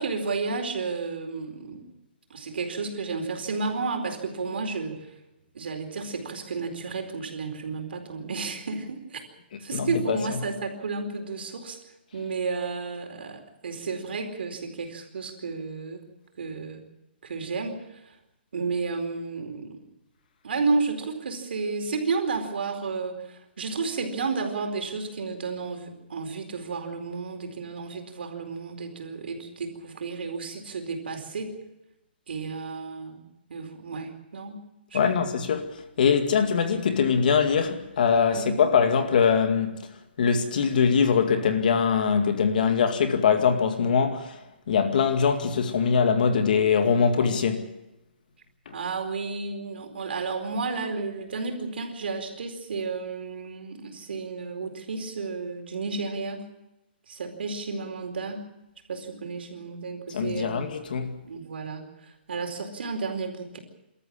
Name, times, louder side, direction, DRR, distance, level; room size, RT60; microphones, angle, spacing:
voice 1, 0.0-1.9 2.3-5.1 5.5-9.2 9.6-11.8 12.1-16.0 16.4-16.9 17.2-18.2 18.5-19.8 20.4-31.5 32.3-33.2 33.5-34.6 34.9-35.4 38.3-38.7 48.7-56.4 57.1-58.4 58.9-60.6 61.2-63.6, right 4 dB, 75° right, 4.5 m, -32 dB
voice 2, 9.7-10.2 34.9-35.7 36.0-39.8 40.2-44.4 44.7-47.7 48.7-48.8 60.1-61.1, left 6 dB, 50° left, 2.2 m, -22 dB
26.5 x 13.5 x 8.7 m
hypercardioid pair, 175°, 6 cm